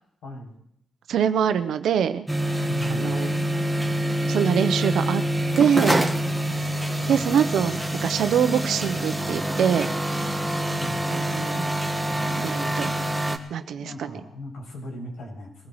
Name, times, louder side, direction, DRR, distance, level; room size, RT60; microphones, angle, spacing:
voice 1, 0.2-0.5 2.6-3.2 7.0-7.3 10.7-11.0 13.7-15.7, left 1 dB, 80° left, -3 dB, 6.8 m, -38 dB
voice 2, 1.1-2.3 2.9-3.4 4.3-5.2 5.6-6.1 7.1-9.9 11.1-11.6 12.4-12.9 13.5-14.1, right 8 dB, 80° right, 10 dB, 0.9 m, -24 dB
sound 1, 2.3-13.4, right 1 dB, 5° right, 1.6 m, -26 dB
22.5 x 16.0 x 3.2 m, 0.73 s
cardioid pair, 70°, 0 cm